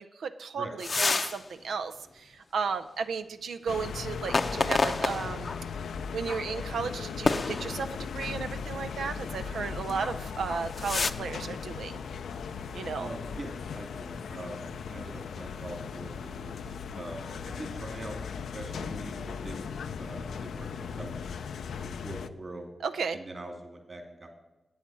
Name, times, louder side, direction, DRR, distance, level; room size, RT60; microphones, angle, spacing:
voice 1, 0.0-5.5 6.1-12.0 12.7-13.1 22.8-23.2, right 5 dB, 80° right, 8 dB, 0.5 m, -34 dB
sound 1, 0.8-1.4 1.8-1.9 4.2-5.6 6.3-6.4 7.2-8.1 9.9-10.2 10.5-11.1, left 3 dB, 45° left, 0.6 m, -29 dB
sound 2, 3.7-22.3, left 6 dB, 85° left, 0.5 m, -38 dB
voice 2, 13.0-21.2 21.8-22.7 23.1-24.4, right 2 dB, 40° right, 3 dB, 2.6 m, -43 dB
9.2 x 8.6 x 7.4 m, 1.0 s
cardioid pair, 55°, 0 cm